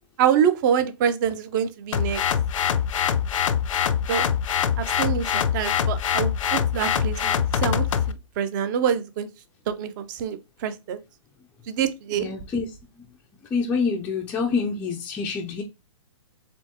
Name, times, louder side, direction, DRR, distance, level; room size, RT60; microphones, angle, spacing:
voice 1, 0.2-2.2 4.1-4.3 4.8-7.9 8.4-9.3 9.7-11.0 11.7-12.3, right 8 dB, 35° right, 0.6 m, -25 dB
sound 1, 1.9-8.1, left 8 dB, 70° left, 0.5 m, -24 dB
voice 2, 12.1-13.0 13.4-15.6, left 5 dB, 10° left, 0.4 m, -27 dB
4.3 x 3.6 x 2.9 m
hypercardioid pair, 145°, 17 cm